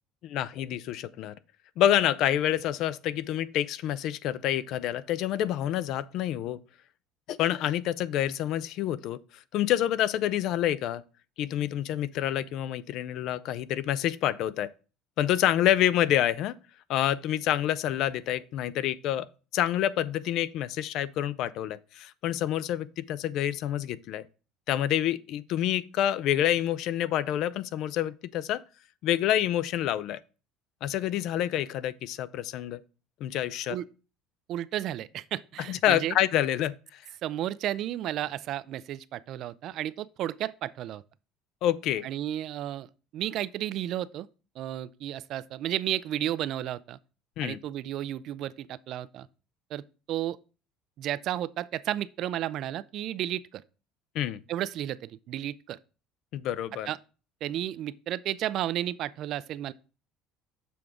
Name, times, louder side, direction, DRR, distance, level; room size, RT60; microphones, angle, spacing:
voice 1, 0.2-1.3 1.8-6.6 7.3-9.2 9.5-11.0 11.4-14.7 15.2-16.6 16.9-19.3 19.5-24.3 24.7-28.6 29.0-30.2 30.8-32.8 33.2-33.8 35.7-37.0 41.6-42.1 47.4-47.6 54.1-54.4 56.3-56.9, left 11 dB, 55° left, 0.4 m, -27 dB
voice 2, 34.5-36.1 37.2-41.0 42.0-44.3 44.6-47.0 47.4-49.3 49.7-49.8 50.1-50.4 51.0-53.6 54.5-55.8 56.9-57.0 57.4-59.7, right 12 dB, 50° right, 0.3 m, -33 dB
6.9 x 3.6 x 6.1 m
cardioid pair, 140°, 0 cm